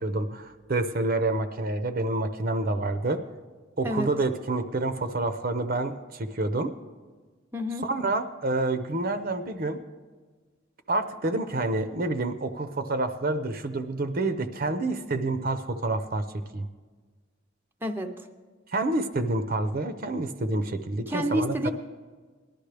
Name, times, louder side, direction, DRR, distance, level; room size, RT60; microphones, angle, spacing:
voice 1, 0.0-3.2 3.8-6.7 7.8-9.8 10.9-16.6 18.7-21.7, right 2 dB, 50° right, 9 dB, 0.7 m, -28 dB
voice 2, 7.5-7.9 17.8-18.1 21.1-21.7, equal, 10° right, 4 dB, 0.6 m, -28 dB
19.0 x 12.0 x 3.4 m, 1.4 s
head